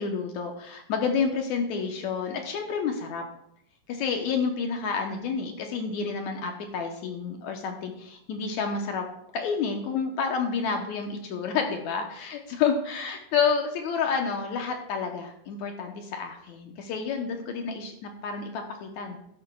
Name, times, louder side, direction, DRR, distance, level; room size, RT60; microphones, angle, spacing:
voice 1, 0.0-3.2 3.9-9.1 9.3-19.2, left 5 dB, 70° left, 4 dB, 2.1 m, -29 dB
12.5 x 10.0 x 2.3 m, 0.75 s
omnidirectional pair, 3.8 m